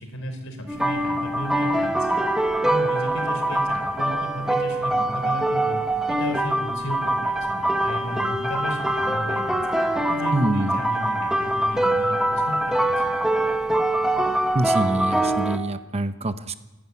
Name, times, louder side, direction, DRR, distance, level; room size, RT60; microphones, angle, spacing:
voice 1, 0.0-2.2 2.6-5.8 6.1-13.2, equal, 65° left, 5 dB, 4.9 m, -34 dB
sound 1, 0.7-15.6, right 1 dB, 5° right, 1.6 m, -24 dB
voice 2, 10.3-10.8 14.5-16.5, right 1 dB, 30° right, 10 dB, 0.9 m, -25 dB
27.0 x 11.5 x 9.6 m, 1.0 s
head